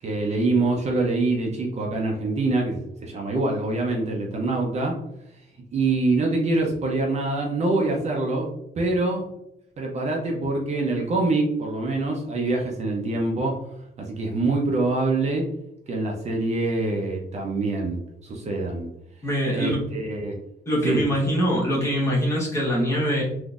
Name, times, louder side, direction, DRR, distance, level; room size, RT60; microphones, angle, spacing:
voice 1, 0.0-5.0 5.7-8.5 8.8-9.3 9.8-13.6 14.0-15.5 15.9-18.9 19.5-20.3 20.8-21.0, right 2 dB, 40° right, 0 dB, 0.5 m, -25 dB
voice 2, 19.2-19.9 20.7-23.2, equal, 15° left, -5 dB, 1.0 m, -23 dB
3.7 x 2.6 x 2.4 m, 0.80 s
wide cardioid pair, 170°, 17 cm